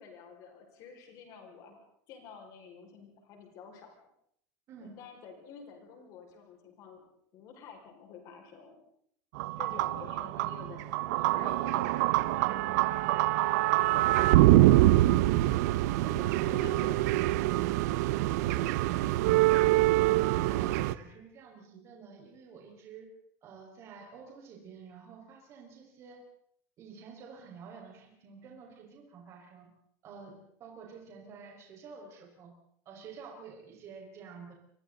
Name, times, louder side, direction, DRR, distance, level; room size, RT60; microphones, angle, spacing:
voice 1, 0.0-1.8 2.1-3.9 4.8-7.0 7.3-8.8 9.6-13.3 13.9-14.6 16.1-17.0 18.3-18.7 19.2-19.7, left 6 dB, 45° left, 2 dB, 5.7 m, -49 dB
voice 2, 4.7-5.0 9.6-9.9 15.5-16.9 19.0-19.2 20.3-23.1 23.4-26.3 26.8-29.7 30.0-32.6 32.9-34.5, right 5 dB, 30° right, 0 dB, 5.4 m, -49 dB
sound 1, 9.4-21.0, right 16 dB, 75° right, 0.9 m, -25 dB
29.5 x 24.5 x 4.1 m, 0.68 s
cardioid pair, 175°, 9 cm